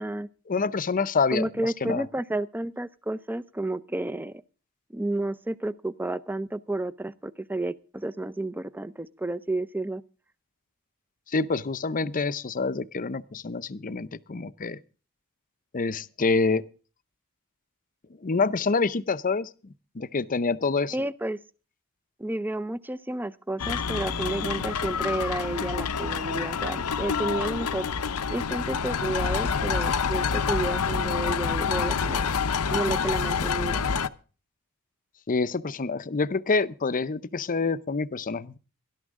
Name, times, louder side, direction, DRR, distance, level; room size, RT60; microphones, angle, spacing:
voice 1, 0.5-2.0 11.3-14.8 15.7-16.6 18.2-19.5 19.9-20.9 35.3-38.6, left 4 dB, 35° left, 0.6 m, -27 dB
voice 2, 1.3-4.4 4.9-10.0 20.9-21.4 22.2-27.9 28.3-32.3 32.7-33.8, right 2 dB, 10° right, 0.5 m, -31 dB
sound 1, 23.6-34.1, left 6 dB, 80° left, 0.8 m, -27 dB
19.0 x 12.0 x 3.6 m
head